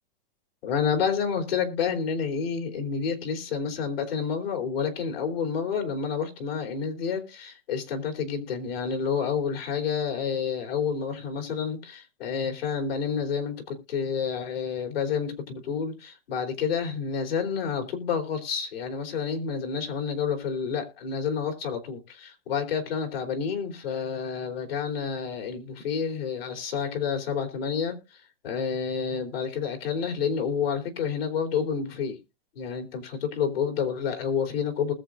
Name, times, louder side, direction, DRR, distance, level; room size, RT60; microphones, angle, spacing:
voice 1, 0.6-32.2 32.6-34.9, left 6 dB, 90° left, 3.4 m, -29 dB
20.0 x 7.4 x 2.5 m
supercardioid pair, 165°, 29 cm